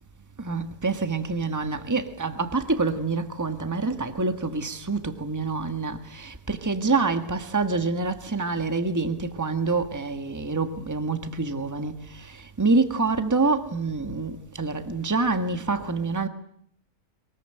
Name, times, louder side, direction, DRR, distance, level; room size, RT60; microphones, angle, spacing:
voice 1, 0.4-16.3, right 3 dB, 10° right, 1.6 m, -26 dB
23.0 x 21.5 x 9.1 m
omnidirectional pair, 1.6 m